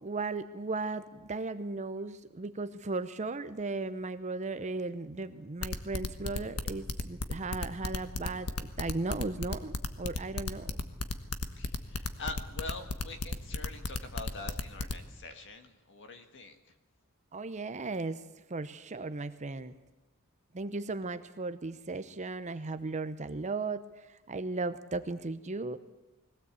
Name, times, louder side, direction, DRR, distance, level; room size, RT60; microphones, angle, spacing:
voice 1, 0.0-10.8 17.3-18.2 18.5-19.7 20.5-25.8, right 3 dB, 35° right, 12 dB, 0.7 m, -36 dB
sound 1, 5.6-14.9, left 3 dB, 90° left, 1.4 m, -34 dB
voice 2, 11.5-16.8, left 3 dB, 55° left, 7 dB, 1.7 m, -44 dB
21.5 x 16.5 x 8.3 m, 1.0 s
head